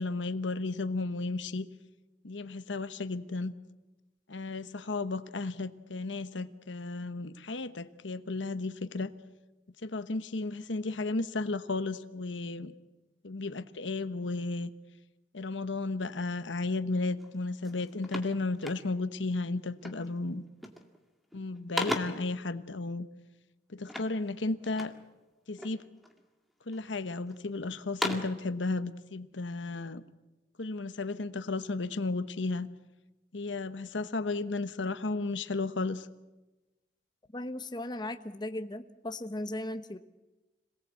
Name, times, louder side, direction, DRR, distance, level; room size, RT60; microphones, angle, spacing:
voice 1, 0.0-1.7 2.2-3.5 4.3-9.1 9.8-12.7 13.2-14.7 15.3-20.4 21.3-23.1 23.7-24.9 25.5-25.8 26.7-30.0 30.6-32.7 33.3-36.1, left 3 dB, 80° left, 11 dB, 1.1 m, -34 dB
sound 1, 17.2-17.3 17.6-19.2 19.8-20.1 20.5-21.0 21.3-22.3 23.9-25.1 25.6-26.2 26.7-27.4 27.8-28.4, left 1 dB, ahead, 2.0 m, -37 dB
voice 2, 37.3-40.0, left 1 dB, 25° left, 8 dB, 1.0 m, -37 dB
26.5 x 18.5 x 8.3 m, 1.1 s
head